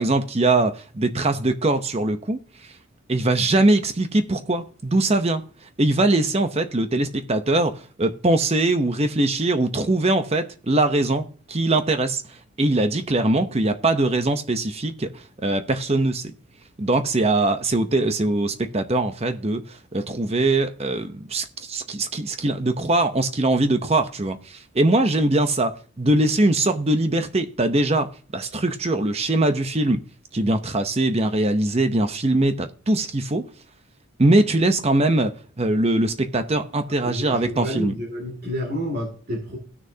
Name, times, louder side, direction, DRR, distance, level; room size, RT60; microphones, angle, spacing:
voice 1, 0.0-2.4 3.1-5.4 5.8-16.3 16.8-30.0 30.3-33.4 34.2-37.9, right 2 dB, 30° right, 0.7 m, -22 dB
voice 2, 37.0-39.6, equal, 45° right, 2.4 m, -30 dB
16.0 x 6.5 x 2.7 m
head